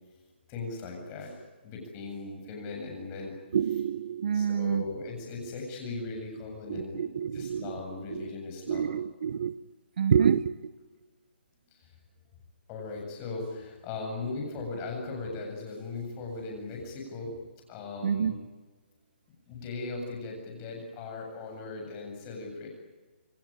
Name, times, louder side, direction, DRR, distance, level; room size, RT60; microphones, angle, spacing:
voice 1, 0.5-1.3 1.6-3.4 4.3-8.9 12.7-17.3 17.7-18.4 19.5-22.7, left 3 dB, 20° left, 2 dB, 7.7 m, -38 dB
voice 2, 3.5-4.8 6.7-7.8 8.1-8.3 8.7-9.6 10.0-10.5 18.0-18.4, right 8 dB, 50° right, 16 dB, 0.9 m, -27 dB
27.5 x 22.5 x 8.9 m, 1.3 s
hypercardioid pair, 165°, 6 cm